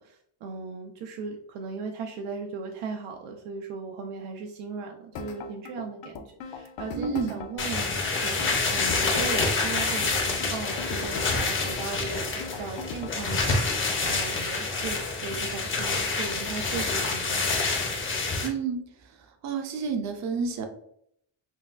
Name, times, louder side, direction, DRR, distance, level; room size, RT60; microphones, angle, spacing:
voice 1, 0.0-13.6 14.0-15.0 15.2-17.5, right 5 dB, 80° right, 2 dB, 0.6 m, -37 dB
sound 1, 5.1-13.2, left 5 dB, 65° left, 0.6 m, -39 dB
voice 2, 6.9-7.3 18.4-18.8 19.4-20.6, right 5 dB, 35° right, 5 dB, 0.5 m, -29 dB
sound 2, 7.6-18.5, left 3 dB, 25° left, 0.6 m, -27 dB
5.7 x 2.2 x 2.4 m, 0.70 s
cardioid pair, 165°, 50 cm